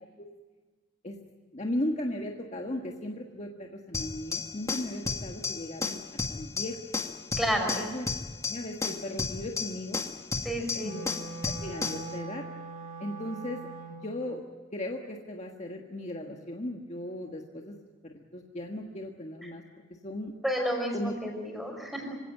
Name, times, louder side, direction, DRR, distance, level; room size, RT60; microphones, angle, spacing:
voice 1, 1.5-6.0 6.3-6.8 7.7-8.1 8.5-10.0 10.8-11.1 11.4-12.5 13.0-13.7 14.0-14.4 14.7-17.7 18.0-19.6 20.0-20.3 20.9-21.1, left 1 dB, 35° left, 1 dB, 1.5 m, -36 dB
sound 1, 3.9-12.1, left 4 dB, 15° left, 1.8 m, -33 dB
voice 2, 7.4-7.7 10.4-10.9 20.4-22.2, equal, ahead, 2 dB, 5.5 m, -30 dB
Wind instrument woodwind instrument, 10.8-14.2, right 4 dB, 45° right, 4.3 m, -41 dB
25.5 x 17.5 x 9.0 m, 1.4 s
head